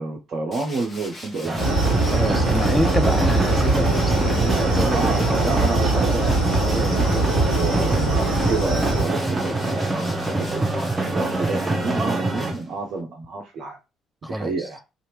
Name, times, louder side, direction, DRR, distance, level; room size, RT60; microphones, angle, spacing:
voice 1, 0.0-1.7 4.9-10.7 11.1-13.8 14.2-14.8, right 3 dB, 45° right, 0.5 m, -29 dB
Tools, 0.5-13.0, left 1 dB, 40° left, 1.0 m, -42 dB
sound 1, 1.4-12.5, right 2 dB, 20° right, 0.8 m, -25 dB
sound 2, 1.6-9.0, right 2 dB, 90° left, 1.1 m, -22 dB
voice 2, 2.0-5.0 14.2-14.6, equal, ahead, 0.3 m, -26 dB
2.8 x 2.4 x 3.0 m
figure-of-eight pair, 45°, 0 cm